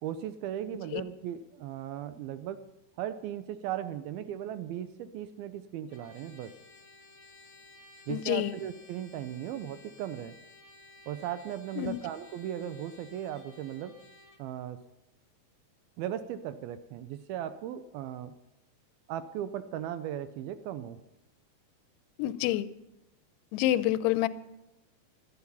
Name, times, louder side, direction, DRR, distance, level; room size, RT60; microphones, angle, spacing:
voice 1, 0.0-2.7 3.0-6.5 8.1-10.4 11.1-14.0 14.4-14.8 16.0-18.3 19.1-21.0, right 10 dB, 80° right, 12 dB, 2.3 m, -37 dB
Trumpet, 5.9-14.4, left 2 dB, 50° left, 1.3 m, -55 dB
voice 2, 8.1-8.5 11.8-12.0 22.2-22.7 23.5-24.3, left 14 dB, 85° left, 16 dB, 2.7 m, -27 dB
16.5 x 12.0 x 5.5 m, 0.92 s
omnidirectional pair, 4.7 m